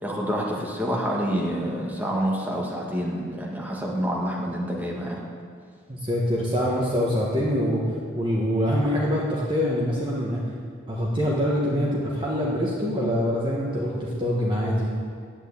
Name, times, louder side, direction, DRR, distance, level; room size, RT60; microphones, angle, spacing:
voice 1, 0.0-5.2, equal, 10° right, -3 dB, 1.8 m, -27 dB
voice 2, 5.9-7.8 8.1-10.4 10.9-14.9, equal, 25° right, -4 dB, 1.5 m, -24 dB
10.5 x 8.9 x 8.7 m, 2.1 s
head